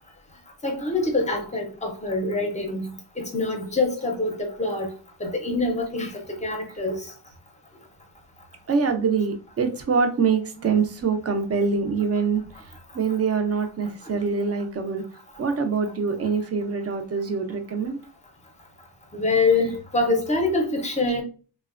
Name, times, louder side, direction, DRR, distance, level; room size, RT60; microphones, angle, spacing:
voice 1, 0.6-4.9 5.2-7.1 14.0-14.1 19.1-21.2, left 3 dB, 15° left, 0.5 m, -25 dB
voice 2, 8.7-15.0 15.4-18.0 19.6-19.7, right 5 dB, 40° right, 0.4 m, -25 dB
3.0 x 2.1 x 2.4 m
wide cardioid pair, 150°, 41 cm